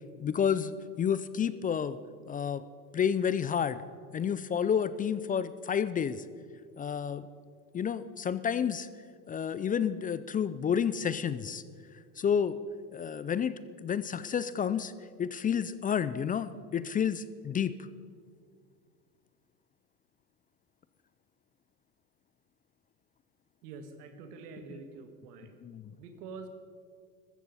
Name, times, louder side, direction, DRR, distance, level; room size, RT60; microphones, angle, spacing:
voice 1, 0.2-2.0 2.3-2.6 2.9-3.8 4.1-6.2 6.8-7.3 7.7-8.9 9.3-11.6 12.2-12.6 12.9-14.9 15.2-17.7 25.6-25.9, left 8 dB, 20° left, 15 dB, 0.4 m, -30 dB
voice 2, 23.6-25.6 26.0-26.5, right 4 dB, 75° right, 7 dB, 1.8 m, -46 dB
14.5 x 13.5 x 5.6 m, 2.1 s
hypercardioid pair, 85°, 47 cm